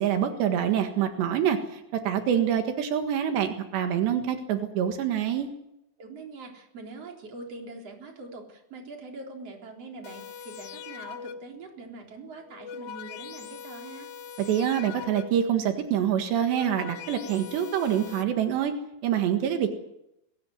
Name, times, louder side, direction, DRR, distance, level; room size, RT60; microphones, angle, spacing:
voice 1, 0.0-5.5 14.5-18.7 19.0-19.7, right 9 dB, 85° right, 6 dB, 3.9 m, -26 dB
voice 2, 6.0-14.1, right 3 dB, 35° right, 2 dB, 4.7 m, -43 dB
sound 1, 10.0-11.7 12.4-15.6 16.2-18.2, left 7 dB, 70° left, 1.8 m, -42 dB
22.0 x 19.5 x 8.0 m, 0.83 s
omnidirectional pair, 4.9 m